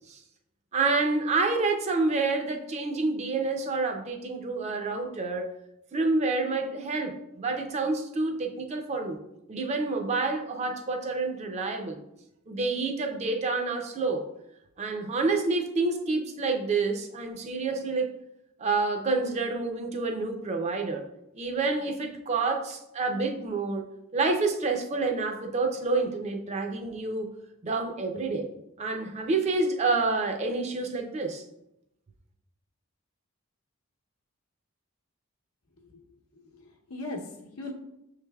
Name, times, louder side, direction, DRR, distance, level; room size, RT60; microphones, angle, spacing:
voice 1, 0.7-5.5 5.9-9.2 9.5-12.0 12.5-14.2 14.8-18.1 18.6-21.0 21.3-23.8 24.1-27.3 27.6-28.5 28.8-31.4, right 3 dB, 30° right, 4 dB, 0.4 m, -28 dB
voice 2, 36.3-37.7, left 2 dB, 80° left, 1 dB, 0.8 m, -39 dB
6.2 x 3.2 x 2.3 m, 0.85 s
head